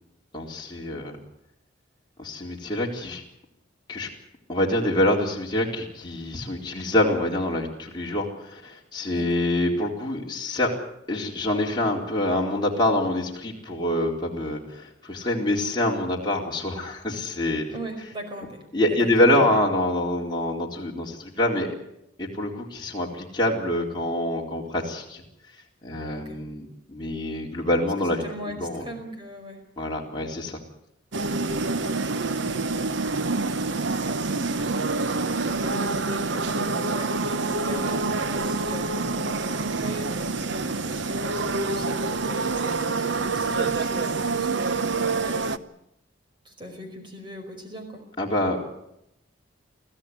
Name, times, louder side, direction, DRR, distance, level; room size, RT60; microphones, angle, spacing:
voice 1, 0.3-1.2 2.2-3.2 3.9-4.1 4.5-10.7 11.1-17.6 18.7-21.7 22.2-25.2 25.8-28.2 28.6-28.8 29.8-30.6 48.2-48.6, left 1 dB, 25° left, -3 dB, 4.0 m, -25 dB
voice 2, 17.7-19.6 26.1-26.4 27.6-29.6 32.4-32.8 33.3-34.4 35.1-45.6 46.4-48.0, equal, 25° right, 5 dB, 5.1 m, -39 dB
sound 1, 31.1-45.6, right 3 dB, 75° right, 0.9 m, -27 dB
23.5 x 15.0 x 9.9 m, 0.81 s
head